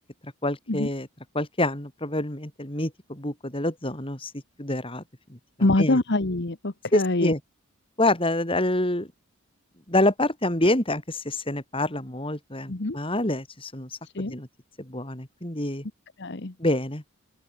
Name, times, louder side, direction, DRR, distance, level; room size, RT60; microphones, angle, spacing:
voice 1, 0.2-1.1 1.3-4.3 4.6-5.0 5.3-6.0 6.9-7.4 8.0-9.1 9.9-13.9 14.2-14.5 14.8-15.8 16.6-17.0, left 1 dB, 25° left, 4.2 m, -27 dB
voice 2, 5.6-7.3 12.7-13.0 14.1-14.3 16.2-16.5, left 2 dB, 55° left, 1.2 m, -24 dB
open air
head